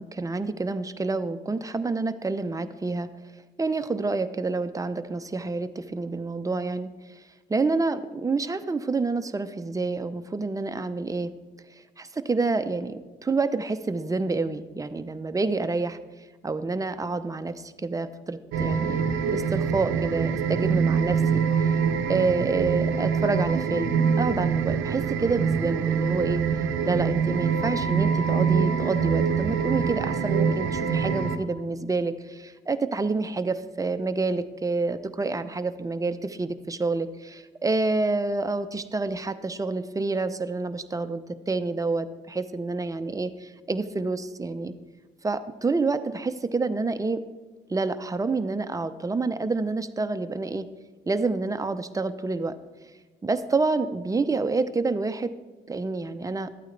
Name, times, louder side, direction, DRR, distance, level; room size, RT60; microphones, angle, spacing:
voice 1, 0.0-3.1 3.6-6.9 7.5-11.3 12.0-16.0 16.4-21.7 22.1-26.4 26.9-44.7 45.2-47.2 47.7-50.7 51.1-52.5 53.2-55.3 55.7-56.5, right 3 dB, 15° right, 9 dB, 0.6 m, -28 dB
sound 1, 18.5-31.4, right 6 dB, 90° right, 0.7 m, -25 dB
12.5 x 8.9 x 3.3 m, 1.3 s
cardioid pair, 90°, 20 cm